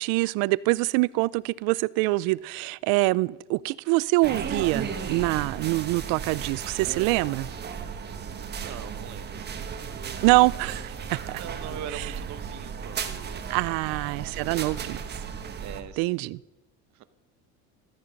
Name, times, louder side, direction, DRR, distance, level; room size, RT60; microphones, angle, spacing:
voice 1, 0.0-7.5 10.2-11.4 13.5-15.0 16.0-16.4, right 22 dB, 70° right, 0.5 m, -25 dB
sound 1, 4.2-15.8, right 6 dB, 30° right, 1.3 m, -35 dB
voice 2, 8.5-9.5 11.2-14.7 15.6-16.3 16.9-17.0, right 10 dB, 50° right, 1.1 m, -42 dB
15.5 x 13.0 x 5.3 m
cardioid pair, 150°, 36 cm